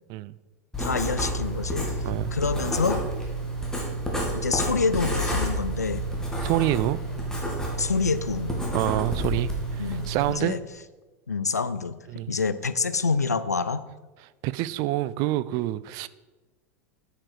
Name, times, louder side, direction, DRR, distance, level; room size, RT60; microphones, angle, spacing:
Writing, 0.7-10.3, right 1 dB, 5° left, 2.3 m, -29 dB
voice 1, 0.8-1.9 2.3-3.0 4.3-6.1 7.8-8.6 9.8-10.6 11.3-12.0 12.3-13.8, left 4 dB, 90° left, 14 dB, 0.5 m, -27 dB
voice 2, 6.4-7.0 8.7-10.6 12.1-12.3 14.4-16.1, right 15 dB, 45° right, 18 dB, 0.4 m, -27 dB
8.7 x 7.0 x 4.8 m, 1.2 s
figure-of-eight pair, 85°, 9 cm